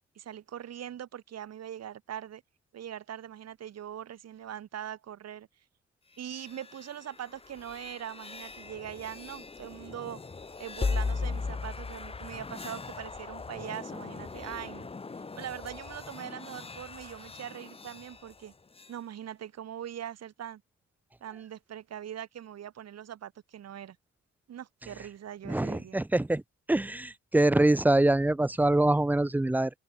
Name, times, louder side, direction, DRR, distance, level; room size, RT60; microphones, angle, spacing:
voice 1, 0.2-2.4 2.7-5.5 6.2-10.2 10.6-14.9 15.4-18.5 18.9-20.6 21.2-24.0 24.5-26.0, right 10 dB, 60° right, 2.6 m, -41 dB
sound 1, 6.1-19.0, left 4 dB, 20° left, 1.3 m, -38 dB
voice 2, 25.4-26.4 26.7-29.7, right 2 dB, 5° right, 0.6 m, -24 dB
cardioid pair, 125°, 29 cm